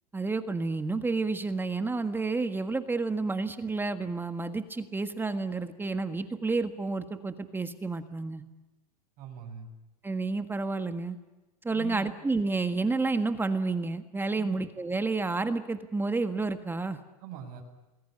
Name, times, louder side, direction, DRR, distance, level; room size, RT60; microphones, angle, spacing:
voice 1, 0.1-8.4 10.0-11.2 11.6-17.0, right 3 dB, 10° right, 9 dB, 1.6 m, -30 dB
voice 2, 9.2-9.7 11.7-12.2 14.4-14.6 17.2-17.6, right 8 dB, 50° right, 1 dB, 7.2 m, -42 dB
27.5 x 20.5 x 9.7 m, 1.1 s
hypercardioid pair, 115°, 19 cm